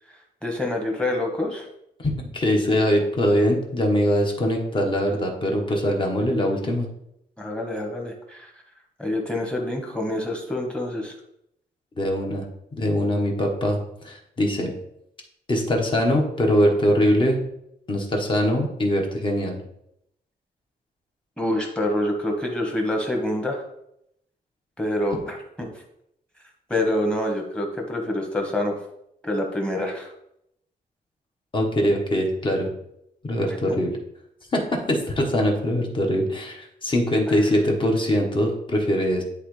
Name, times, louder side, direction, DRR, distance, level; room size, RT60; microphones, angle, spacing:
voice 1, 0.4-1.7 7.4-8.5 9.0-11.1 21.4-23.6 24.8-25.7 26.7-28.8 29.2-30.1 33.5-33.6 37.3-37.4, left 1 dB, 5° left, 1 dB, 1.4 m, -26 dB
voice 2, 2.0-6.9 12.0-12.5 12.8-13.8 14.0-14.7 15.5-17.4 17.9-19.6 31.5-32.7 33.2-33.9 34.5-39.2, equal, 30° left, 1 dB, 1.4 m, -22 dB
10.5 x 3.6 x 3.3 m, 0.78 s
wide cardioid pair, 135°, 17 cm